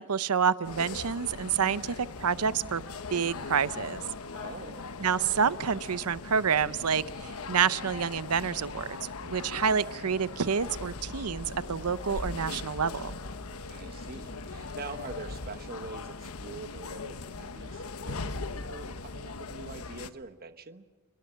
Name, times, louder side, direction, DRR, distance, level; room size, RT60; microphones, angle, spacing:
voice 1, 0.0-2.8 3.1-4.0 5.0-9.0 9.2-13.2, right 6 dB, 90° right, 16 dB, 0.7 m, -28 dB
sound 1, 0.6-20.1, left 4 dB, 75° left, 1.1 m, -40 dB
voice 2, 4.3-4.9 13.7-20.8, right 3 dB, 45° right, 10 dB, 1.1 m, -44 dB
sound 2, 10.6-15.6, equal, 25° left, 5.3 m, -46 dB
29.0 x 21.0 x 7.4 m, 1.4 s
head